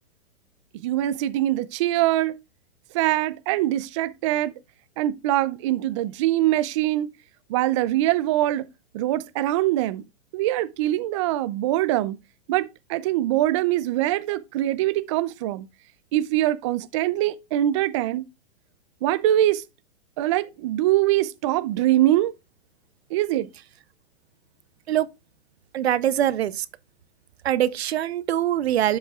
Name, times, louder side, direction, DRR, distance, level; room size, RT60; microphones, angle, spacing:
voice 1, 0.8-2.3 2.9-4.5 5.0-7.1 7.5-8.7 8.9-10.0 10.3-12.2 12.5-15.7 16.1-18.2 19.0-19.6 20.2-22.3 23.1-23.5, right 14 dB, 30° right, 0.4 m, -23 dB
voice 2, 25.7-26.6 27.4-29.0, right 11 dB, 75° right, 0.7 m, -23 dB
11.5 x 5.3 x 2.3 m
hypercardioid pair, 140°, 32 cm